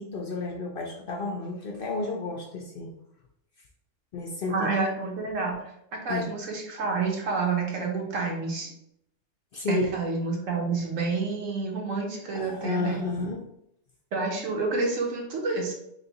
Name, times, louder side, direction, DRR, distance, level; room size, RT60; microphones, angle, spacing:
voice 1, 0.0-2.9 4.1-4.7 6.1-6.3 9.5-9.8 12.3-13.4, left 3 dB, 60° left, 0 dB, 0.6 m, -31 dB
voice 2, 4.5-8.7 9.7-13.0 14.1-15.7, right 4 dB, 75° right, 0 dB, 1.3 m, -29 dB
3.4 x 2.6 x 3.9 m, 0.77 s
omnidirectional pair, 1.3 m